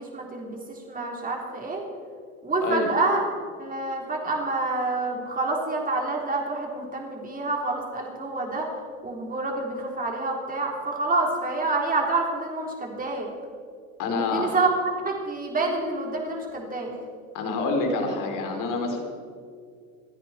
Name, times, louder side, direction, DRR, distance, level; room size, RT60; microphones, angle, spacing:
voice 1, 0.0-1.8 2.4-3.2 3.6-8.7 9.0-13.3 14.2-14.7 15.0-16.9, right 3 dB, 20° right, 0 dB, 3.9 m, -27 dB
voice 2, 14.0-14.6 17.3-19.0, left 3 dB, 50° left, 3 dB, 3.7 m, -27 dB
28.0 x 9.9 x 4.4 m, 2.2 s
hypercardioid pair, 100°, 40 cm